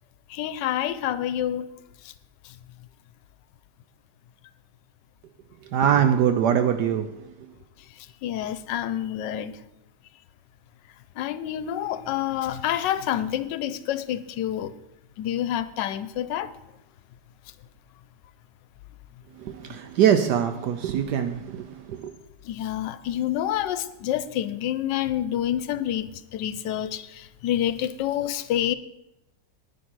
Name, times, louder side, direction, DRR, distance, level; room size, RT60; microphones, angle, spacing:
voice 1, 0.3-1.7 8.2-9.5 11.2-14.7 15.2-16.5 22.4-28.7, left 11 dB, 85° left, 13 dB, 1.3 m, -28 dB
voice 2, 5.7-7.1 7.4-7.5 19.4-22.1, right 9 dB, 75° right, 8 dB, 1.2 m, -23 dB
10.0 x 10.0 x 4.6 m, 0.88 s
omnidirectional pair, 1.9 m